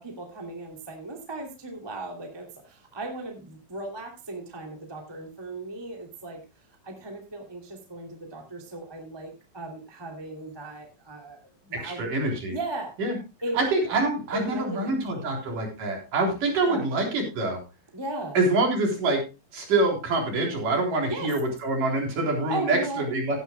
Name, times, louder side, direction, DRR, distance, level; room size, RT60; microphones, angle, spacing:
voice 1, 0.0-6.4 6.8-12.0 12.5-12.9 13.4-13.6 14.3-15.3 16.6-16.9 17.9-18.4 21.1-21.3 22.5-23.1, right 2 dB, 10° right, 2 dB, 1.2 m, -36 dB
voice 2, 11.7-12.5 13.0-13.2 13.5-17.6 18.3-19.2 19.5-23.4, right 2 dB, 45° right, 1 dB, 4.9 m, -25 dB
17.0 x 11.5 x 2.3 m, 0.28 s
omnidirectional pair, 5.7 m